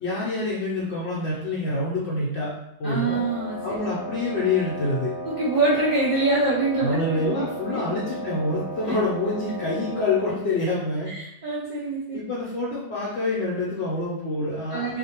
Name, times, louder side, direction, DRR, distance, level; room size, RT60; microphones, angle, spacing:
voice 1, 0.0-2.5 2.8-3.2 3.6-5.1 6.8-11.1 12.1-15.0, left 2 dB, 70° left, -7 dB, 0.8 m, -26 dB
voice 2, 2.8-3.8 5.2-7.8 8.9-9.0 11.1-12.2 14.7-15.0, right 2 dB, 50° right, -9 dB, 0.6 m, -25 dB
Wind instrument woodwind instrument, 3.1-10.5, right 1 dB, 75° right, 1.2 m, -35 dB
2.5 x 2.1 x 2.8 m, 0.83 s
omnidirectional pair, 1.2 m